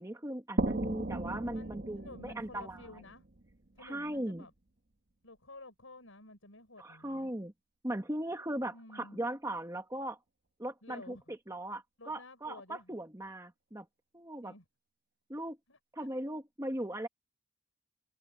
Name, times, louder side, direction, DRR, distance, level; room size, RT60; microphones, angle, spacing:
voice 1, 0.0-2.8 3.8-4.4 6.8-7.5 7.8-10.2 10.6-13.9 14.1-14.5 15.3-15.6 15.9-17.1, right 1 dB, 15° right, 1.4 m, -38 dB
sound 1, 0.6-4.1, right 2 dB, 50° right, 1.4 m, -37 dB
voice 2, 1.5-3.3 3.8-4.5 5.2-7.3 8.7-9.2 10.8-11.3 12.0-12.9 14.4-14.6 15.7-16.1, left 2 dB, 75° left, 6.4 m, -52 dB
head